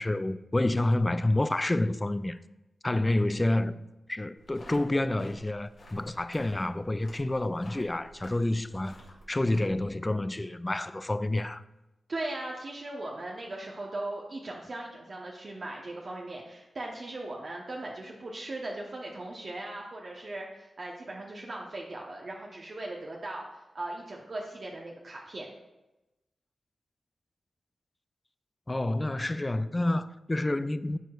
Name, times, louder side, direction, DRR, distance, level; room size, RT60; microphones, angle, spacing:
voice 1, 0.0-2.4 2.8-9.0 9.3-11.6 28.7-31.0, left 1 dB, 25° left, 0.4 m, -28 dB
sound 1, 4.4-9.9, equal, 70° left, 2.1 m, -52 dB
voice 2, 12.1-23.4 23.7-25.5, right 2 dB, 55° right, 0.9 m, -38 dB
12.0 x 4.5 x 2.4 m
cardioid pair, 45°, 0 cm